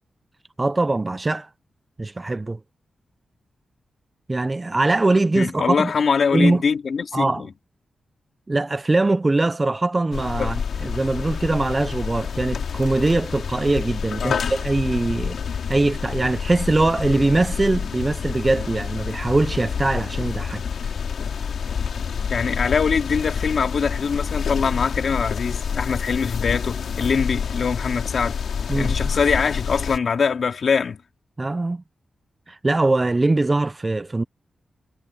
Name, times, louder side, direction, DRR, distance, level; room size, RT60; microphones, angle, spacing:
voice 1, 0.6-1.5 2.0-2.6 4.3-5.9 6.3-6.6 7.1-7.4 8.5-15.4 15.7-20.6 28.7-29.0 31.4-31.8 32.5-34.2, right 2 dB, 20° right, 0.5 m, -22 dB
voice 2, 5.3-7.5 10.4-10.5 14.2-14.4 20.6-20.7 22.3-28.4 28.7-31.0, left 5 dB, 55° left, 3.4 m, -23 dB
sound 1, 10.1-30.0, left 6 dB, 75° left, 2.4 m, -28 dB
wide cardioid pair, 140°, 0 cm